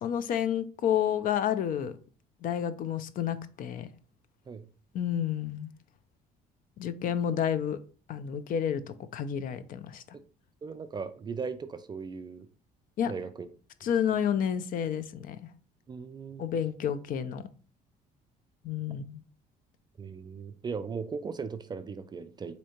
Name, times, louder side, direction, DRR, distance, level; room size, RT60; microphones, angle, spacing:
voice 1, 0.0-1.9 2.4-3.9 4.9-5.7 6.8-7.8 8.1-10.2 13.0-13.1 13.8-15.4 16.4-17.4 18.6-19.2, left 9 dB, 55° left, 0.4 m, -30 dB
voice 2, 10.6-12.5 13.1-13.5 15.9-16.4 20.0-22.6, right 5 dB, 25° right, 0.3 m, -38 dB
4.2 x 2.7 x 2.9 m
cardioid pair, 110°, 17 cm